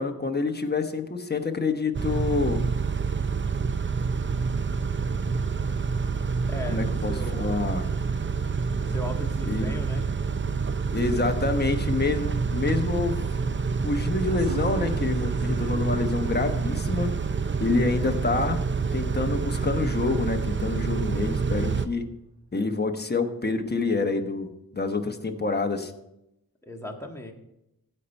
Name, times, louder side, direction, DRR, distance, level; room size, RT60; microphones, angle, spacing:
voice 1, 0.0-2.6 6.7-7.9 9.4-9.7 10.9-13.2 13.8-17.1 17.6-18.6 18.9-22.1 22.5-25.9, left 3 dB, 25° left, 5 dB, 1.1 m, -27 dB
Car / Idling / Accelerating revving vroom, 1.9-21.9, right 5 dB, 30° right, 0.5 m, -27 dB
voice 2, 6.5-7.7 8.7-10.1 26.6-27.3, left 1 dB, 5° left, 1 dB, 1.6 m, -37 dB
sound 1, 14.2-19.5, right 2 dB, 80° right, 1.1 m, -44 dB
16.0 x 5.5 x 4.4 m, 0.87 s
wide cardioid pair, 70°, 37 cm